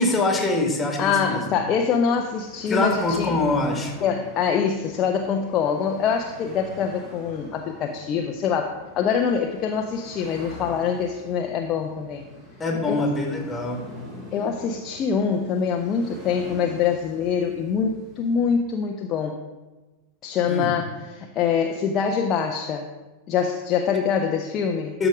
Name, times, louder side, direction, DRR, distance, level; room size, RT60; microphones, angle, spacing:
voice 1, 0.0-1.5 2.7-4.0 12.6-13.8 20.5-20.7 25.0-25.1, left 2 dB, 15° left, 2 dB, 1.9 m, -24 dB
voice 2, 1.0-3.3 4.0-12.2 12.9-13.1 14.3-19.4 20.2-22.9 23.3-25.0, left 6 dB, 35° left, 3 dB, 0.7 m, -24 dB
sound 1, 1.9-18.6, left 1 dB, 30° right, 3.3 m, -44 dB
12.5 x 5.0 x 4.9 m, 1.2 s
figure-of-eight pair, 90°, 0 cm